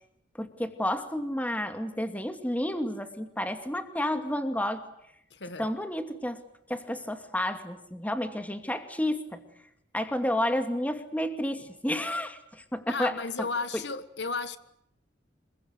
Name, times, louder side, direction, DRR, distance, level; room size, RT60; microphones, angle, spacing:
voice 1, 0.4-4.8 5.6-6.4 6.7-9.4 9.9-13.5 13.7-13.8, left 1 dB, 10° left, 2.5 m, -31 dB
voice 2, 5.3-5.7 12.9-14.6, left 4 dB, 65° left, 1.6 m, -33 dB
27.5 x 23.0 x 8.2 m
head